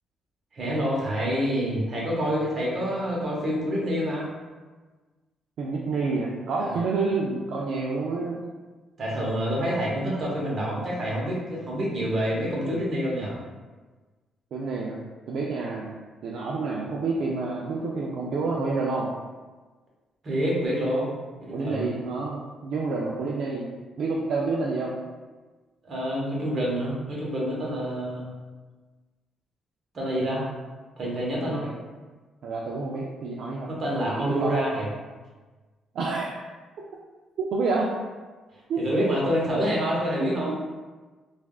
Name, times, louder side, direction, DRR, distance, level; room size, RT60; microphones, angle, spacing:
voice 1, 0.5-4.3 6.6-6.8 9.0-13.4 20.2-21.1 21.4-21.9 25.8-28.3 29.9-30.5 31.0-31.7 33.7-34.9 38.5-40.5, equal, 50° right, -5 dB, 1.0 m, -27 dB
voice 2, 5.6-8.4 14.5-15.0 15.3-15.9 16.2-19.1 21.5-23.7 24.0-24.9 31.4-31.7 32.4-33.7 34.2-34.5 35.9-36.4 37.5-37.9 38.7-38.8 40.2-40.5, right 3 dB, 70° right, -3 dB, 0.3 m, -28 dB
3.3 x 2.4 x 2.3 m, 1.3 s
cardioid pair, 90°, 0 cm